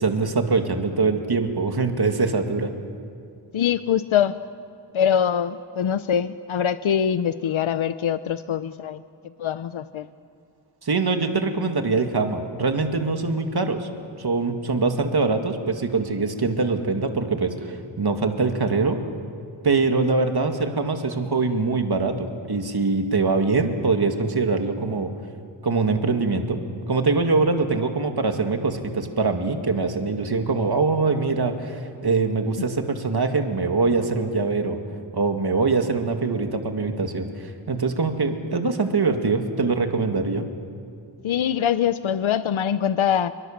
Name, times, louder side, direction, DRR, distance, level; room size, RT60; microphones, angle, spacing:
voice 1, 0.0-2.7 10.8-13.9 14.2-19.0 19.6-25.1 25.6-26.6 26.9-34.8 35.1-40.4, right 4 dB, 55° right, 5 dB, 2.2 m, -23 dB
voice 2, 3.5-4.4 4.9-9.0 9.4-10.1 32.6-32.7 41.2-43.3, left 8 dB, 85° left, 13 dB, 0.7 m, -23 dB
27.5 x 23.5 x 7.3 m, 2.4 s
wide cardioid pair, 90°, 47 cm